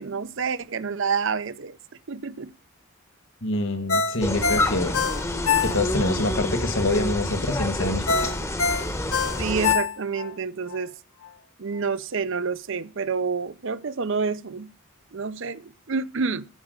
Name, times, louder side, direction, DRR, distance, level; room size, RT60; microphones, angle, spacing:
voice 1, 0.0-1.8 2.1-2.5 9.4-10.9 11.6-14.7 15.1-16.5, right 5 dB, 55° right, 0.6 m, -28 dB
voice 2, 3.4-5.0 5.6-8.3, left 2 dB, 55° left, 1.6 m, -26 dB
Ringtone, 3.9-6.1 6.5-6.6 8.1-10.3 10.7-10.8, left 6 dB, 75° left, 1.5 m, -24 dB
sound 1, 4.2-9.7, left 1 dB, 15° left, 0.9 m, -28 dB
14.5 x 5.0 x 6.4 m
head